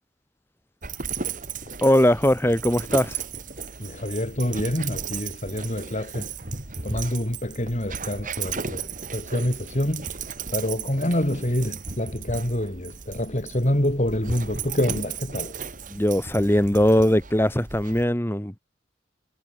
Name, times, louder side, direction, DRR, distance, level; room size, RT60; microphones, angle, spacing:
Dog, 0.8-18.0, right 5 dB, 45° right, 3.5 m, -35 dB
voice 1, 1.8-3.2 15.9-18.6, equal, 10° left, 2.7 m, -20 dB
voice 2, 3.8-6.3 6.8-10.1 10.5-15.6, left 1 dB, 40° left, 3.8 m, -27 dB
head